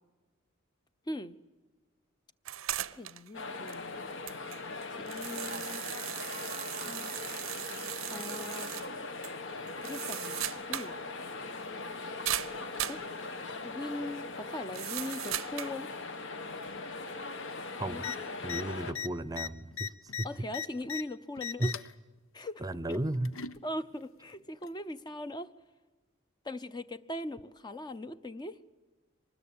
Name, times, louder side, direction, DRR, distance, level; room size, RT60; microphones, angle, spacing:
voice 1, 1.1-1.4 2.9-4.1 5.0-5.8 6.8-7.1 8.1-8.8 9.8-11.0 12.7-13.0 13.6-15.9 17.9-18.0 20.2-21.8 22.3-23.0 23.6-25.5 26.4-28.6, left 1 dB, 20° left, 0.7 m, -40 dB
sound 1, 2.5-3.3 3.7-3.8 4.3-8.9 9.2-9.3 9.7-11.0 11.2-11.3 12.3-13.1 14.7-15.8, right 13 dB, 85° right, 0.7 m, -38 dB
sound 2, 3.3-18.9, left 3 dB, 65° left, 1.7 m, -40 dB
sound 3, 18.0-18.2 18.4-18.6 18.9-21.0 21.4-21.9 22.9-23.6 24.6-24.7, left 8 dB, 80° left, 0.9 m, -38 dB
voice 2, 18.4-20.3 21.6-21.7 22.6-23.3, right 1 dB, 20° right, 0.7 m, -34 dB
24.5 x 20.5 x 8.6 m
head